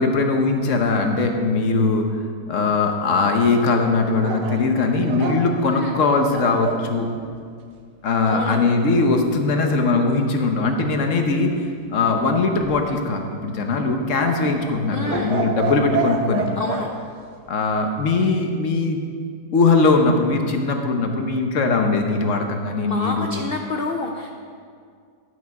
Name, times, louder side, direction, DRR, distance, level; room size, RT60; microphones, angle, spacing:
voice 1, 0.0-2.1 2.5-7.1 8.0-11.5 11.9-16.5 17.5-19.0 19.5-23.4, left 3 dB, 55° left, 4 dB, 1.2 m, -20 dB
sound 1, 4.2-6.9 12.2-13.1 14.1-16.9, right 4 dB, 75° right, 1.5 m, -28 dB
voice 2, 8.2-8.6 14.9-15.3 16.6-16.9 22.8-24.3, left 3 dB, 75° left, 2 dB, 0.5 m, -28 dB
11.5 x 6.4 x 5.9 m, 2.2 s
omnidirectional pair, 1.8 m